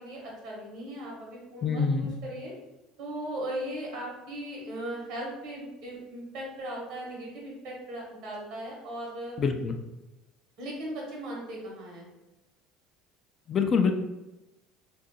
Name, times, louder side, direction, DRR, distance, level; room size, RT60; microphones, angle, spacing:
voice 1, 0.0-2.5 3.0-9.4 10.6-12.1, right 1 dB, 70° right, -3 dB, 1.1 m, -38 dB
voice 2, 1.6-2.1 9.4-9.8 13.5-13.9, left 5 dB, 40° left, 5 dB, 0.3 m, -25 dB
2.6 x 2.6 x 2.7 m, 0.99 s
supercardioid pair, 90°, 0 cm